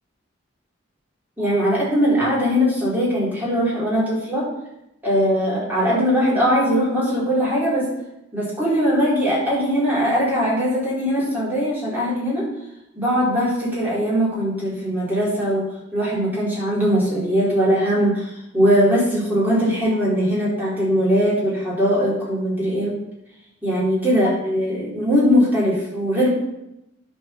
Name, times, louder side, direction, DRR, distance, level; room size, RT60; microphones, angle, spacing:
voice 1, 1.4-4.5 5.0-7.9 8.3-12.5 13.0-23.0 23.6-26.3, equal, 10° right, -7 dB, 3.8 m, -20 dB
10.0 x 4.8 x 6.9 m, 0.84 s
head